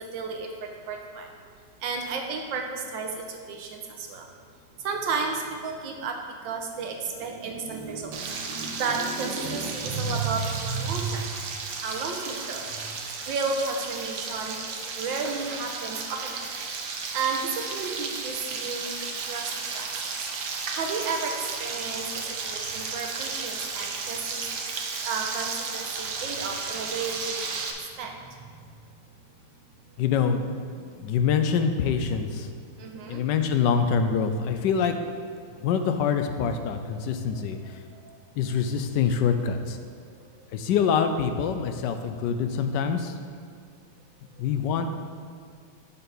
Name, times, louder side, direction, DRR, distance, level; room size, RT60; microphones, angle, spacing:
voice 1, 0.1-1.3 1.8-4.3 4.8-11.3 11.8-12.7 13.0-14.6 15.0-16.5 17.1-18.9 19.2-19.9 20.2-20.3 20.7-24.4 25.0-27.3 28.0-28.1 30.8-30.9 32.8-33.3 37.3-37.4 37.9-38.2, right 4 dB, 85° right, 3 dB, 1.6 m, -32 dB
Frying (food), 8.1-27.7, right 4 dB, 65° right, 1.3 m, -34 dB
voice 2, 30.0-30.5 31.0-32.5 33.1-35.0 35.6-37.8 38.4-39.8 40.5-43.2 44.4-44.9, left 6 dB, 75° left, 7 dB, 1.2 m, -25 dB
11.0 x 5.6 x 4.0 m, 2.2 s
omnidirectional pair, 2.0 m